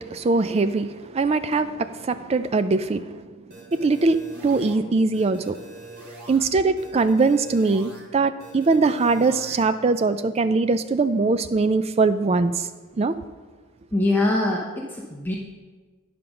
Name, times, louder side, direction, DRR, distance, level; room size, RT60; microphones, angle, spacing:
voice 1, 0.0-3.2 3.7-5.6 6.3-12.7 13.0-13.1, right 3 dB, 30° right, 11 dB, 0.3 m, -22 dB
sound 1, 3.5-4.7 5.1-6.4 6.8-8.0 8.4-9.6, right 2 dB, 45° right, 2.8 m, -43 dB
voice 2, 13.9-15.3, left 2 dB, 10° left, -3 dB, 0.7 m, -23 dB
9.3 x 5.0 x 5.9 m, 1.4 s
head